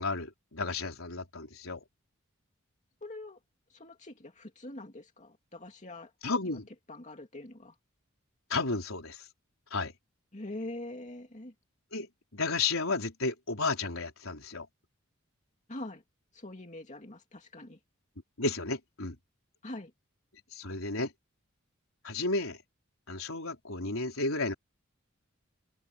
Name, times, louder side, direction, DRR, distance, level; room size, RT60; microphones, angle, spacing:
voice 1, 0.0-1.8 6.2-6.7 8.5-9.2 9.7-9.9 11.9-12.1 12.3-14.7 18.4-19.2 20.5-21.1 22.0-22.6 23.1-24.5, left 3 dB, 80° left, 4.2 m, -32 dB
voice 2, 3.0-3.4 3.7-6.1 6.4-6.6 6.9-7.7 10.3-11.5 15.7-16.0 16.3-17.8 19.6-19.9, left 1 dB, 35° left, 2.6 m, -43 dB
head